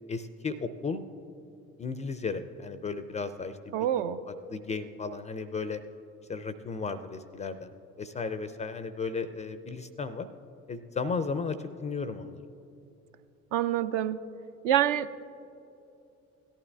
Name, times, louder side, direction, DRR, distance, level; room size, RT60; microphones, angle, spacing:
voice 1, 0.1-1.0 1.8-3.8 4.3-5.8 6.3-7.7 8.0-10.3 10.7-12.4, left 4 dB, 15° left, 12 dB, 0.4 m, -34 dB
voice 2, 3.7-4.2 13.5-14.2 14.6-15.3, right 11 dB, 60° right, 11 dB, 0.6 m, -26 dB
17.5 x 11.5 x 2.3 m, 2.8 s
figure-of-eight pair, 55°, 43 cm